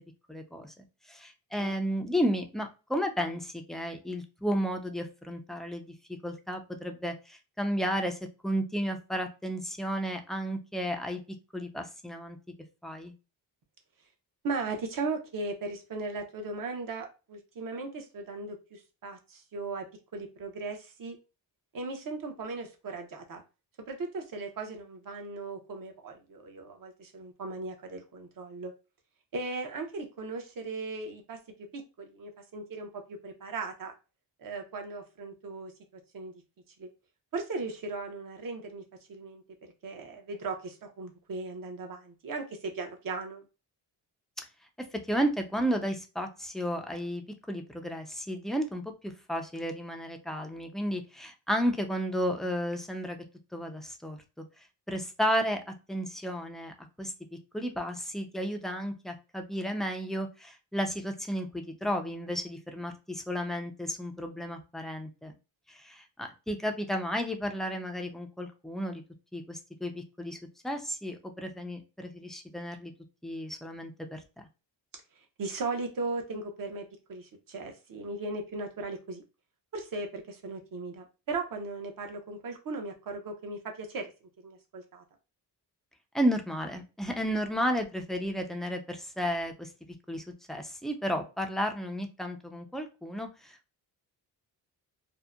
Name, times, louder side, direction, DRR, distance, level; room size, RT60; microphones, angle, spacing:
voice 1, 0.3-0.7 1.1-5.9 6.2-11.2 11.5-12.4 12.8-13.1 44.4-44.5 44.8-53.2 53.5-54.4 54.9-57.1 57.5-65.3 65.7-69.0 69.3-70.4 70.6-72.9 73.2-74.5 86.1-89.7 90.1-93.8, equal, ahead, 4 dB, 0.4 m, -33 dB
voice 2, 14.4-19.9 20.1-21.2 21.7-23.4 23.9-28.7 29.3-31.4 31.7-33.9 34.4-35.7 36.1-36.3 36.8-36.9 37.3-38.8 39.1-39.4 39.8-43.4 75.4-79.2 79.7-84.1 84.4-85.0, right 3 dB, 50° right, 4 dB, 0.7 m, -37 dB
2.7 x 2.1 x 2.2 m, 0.30 s
cardioid pair, 80°, 43 cm